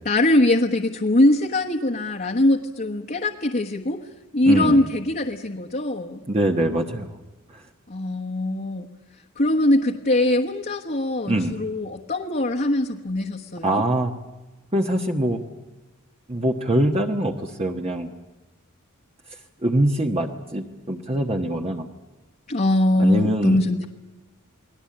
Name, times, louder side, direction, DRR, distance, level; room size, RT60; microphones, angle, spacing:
voice 1, 0.0-4.0 4.3-6.2 7.9-8.9 9.4-13.8 22.5-23.9, left 1 dB, 40° left, 1 dB, 1.4 m, -22 dB
voice 2, 4.5-4.9 6.3-7.2 7.5-7.6 11.3-11.5 13.6-14.1 14.7-15.4 16.3-18.1 19.3-21.9 23.0-23.6, right 1 dB, 30° right, 3 dB, 1.2 m, -23 dB
29.0 x 20.5 x 8.7 m, 1.1 s
head